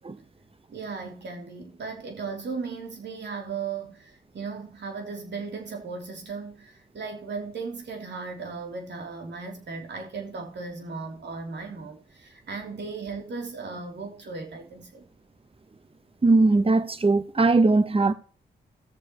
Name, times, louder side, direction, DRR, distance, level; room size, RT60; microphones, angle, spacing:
voice 1, 0.7-15.0, right 4 dB, 65° right, 3.3 m, -36 dB
voice 2, 16.2-18.1, right 3 dB, 30° right, 1.1 m, -20 dB
17.5 x 7.1 x 3.1 m
cardioid pair, 60°, 19 cm